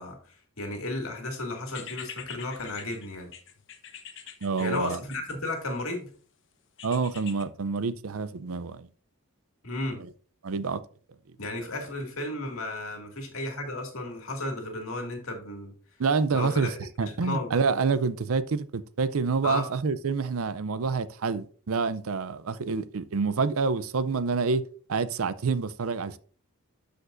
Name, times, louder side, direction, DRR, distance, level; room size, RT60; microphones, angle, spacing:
voice 1, 0.0-3.3 4.6-6.1 9.6-10.0 11.4-15.7 16.3-16.8 17.1-17.5 19.4-19.6, left 2 dB, 70° left, 2.2 m, -34 dB
sound 1, 1.7-5.9 6.8-7.4, left 8 dB, 55° left, 0.9 m, -44 dB
voice 2, 4.4-5.0 6.8-8.9 10.4-10.8 16.0-16.7 17.0-24.6 24.9-26.2, right 4 dB, 70° right, 0.5 m, -27 dB
12.5 x 5.2 x 2.6 m
head